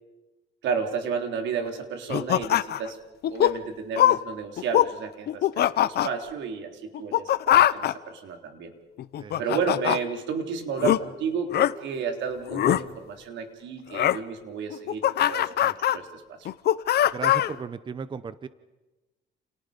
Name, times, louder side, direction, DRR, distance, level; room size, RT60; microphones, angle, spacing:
voice 1, 0.6-3.0 3.3-8.7 9.4-16.5, right 6 dB, 85° right, 5 dB, 3.8 m, -32 dB
sound 1, 2.1-2.9 3.2-3.5 4.0-4.2 4.6-4.9 5.3-6.1 6.9-7.9 9.0-10.0 10.8-11.0 11.5-11.7 12.5-12.8 13.9-14.2 14.7-16.0 16.5-17.5, left 12 dB, 60° left, 0.9 m, -22 dB
voice 2, 17.1-18.5, right 5 dB, 25° right, 14 dB, 0.8 m, -35 dB
30.0 x 29.5 x 5.3 m, 1.1 s
cardioid pair, 150°, 19 cm